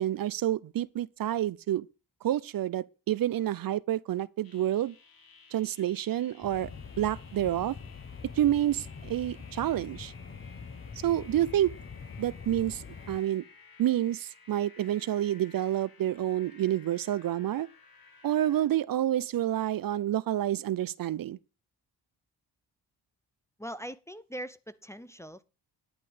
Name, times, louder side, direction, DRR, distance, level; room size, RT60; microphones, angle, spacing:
voice 1, 0.0-1.9 2.2-4.9 5.5-6.7 7.0-7.8 8.4-10.1 11.0-11.7 12.2-13.4 13.8-17.7 18.2-21.4, right 12 dB, 55° right, 0.6 m, -28 dB
sound 1, 4.4-18.7, left 4 dB, 55° left, 2.4 m, -56 dB
sound 2, 6.4-13.2, left 5 dB, 30° left, 1.2 m, -44 dB
voice 2, 23.6-25.4, equal, 5° left, 0.6 m, -41 dB
11.0 x 9.0 x 5.0 m
cardioid pair, 85°, 42 cm